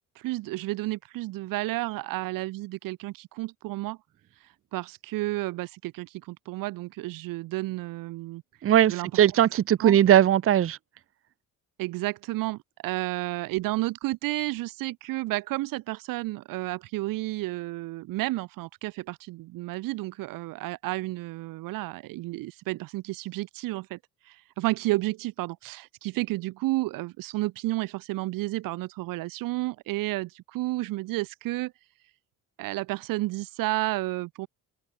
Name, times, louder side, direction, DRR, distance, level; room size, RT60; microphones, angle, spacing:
voice 1, 0.2-4.0 4.7-8.4 8.9-9.2 9.8-10.0 11.8-24.0 24.3-31.7 32.6-34.5, right 19 dB, 80° right, 0.7 m, -31 dB
voice 2, 8.6-10.8, right 11 dB, 40° right, 0.7 m, -19 dB
open air
cardioid pair, 85°, 33 cm